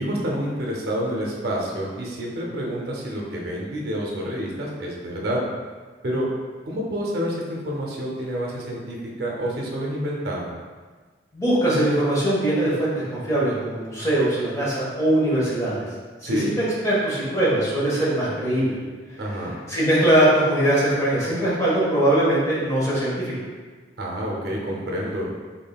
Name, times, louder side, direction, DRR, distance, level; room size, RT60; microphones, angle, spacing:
voice 1, 0.0-5.4 6.0-6.3 6.7-10.5 16.2-16.5 19.2-19.6 24.0-25.3, equal, 60° right, -2 dB, 0.6 m, -28 dB
voice 2, 11.3-15.8 16.2-18.8 19.7-23.3, right 1 dB, 15° left, -7 dB, 1.0 m, -21 dB
3.7 x 3.6 x 2.3 m, 1.4 s
head